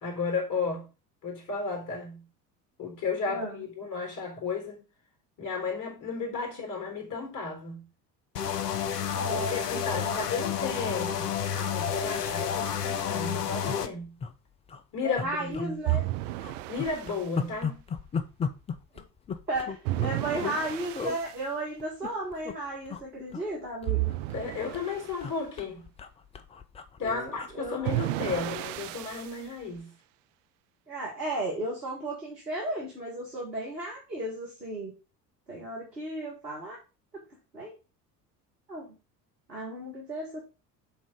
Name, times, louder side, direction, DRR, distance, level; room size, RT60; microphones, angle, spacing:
voice 1, 0.0-0.9 1.2-2.2 2.8-4.8 5.4-7.8 9.3-14.1 14.9-15.7 16.7-17.8 24.3-25.9 27.0-29.9, left 4 dB, 40° left, 3.6 m, -33 dB
voice 2, 3.3-3.6 6.3-6.4 9.1-9.6 9.9-10.4 15.0-16.0 18.9-19.0 19.5-24.1 27.0-28.0 30.9-34.9 35.5-36.8 37.1-37.2 37.5-37.7 38.7-38.9 39.5-40.4, right 1 dB, 85° right, 1.7 m, -35 dB
sound 1, 8.4-13.9, left 8 dB, 75° left, 0.7 m, -30 dB
sound 2, 13.6-14.3 14.7-14.8 15.2-16.1 16.4-20.6 20.9-21.2 21.8-22.6 22.9-23.0 23.3-24.5 24.7-29.3 29.6-29.8, left 6 dB, 15° left, 0.4 m, -37 dB
sound 3, 15.9-17.3 19.8-21.4 23.9-25.2 27.8-29.4, right 17 dB, 55° right, 0.5 m, -32 dB
8.5 x 3.7 x 5.0 m
figure-of-eight pair, 65°, 48 cm